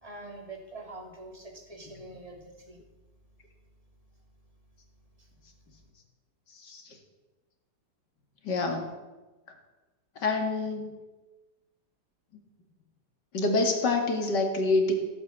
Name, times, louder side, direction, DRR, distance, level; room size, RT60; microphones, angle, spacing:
voice 1, 0.0-2.8, right 2 dB, 20° right, 2 dB, 2.7 m, -44 dB
voice 2, 6.5-7.0 8.4-8.9 10.2-10.9 13.3-14.9, left 3 dB, 75° left, 4 dB, 2.7 m, -27 dB
16.0 x 8.7 x 8.3 m, 1.1 s
omnidirectional pair, 1.8 m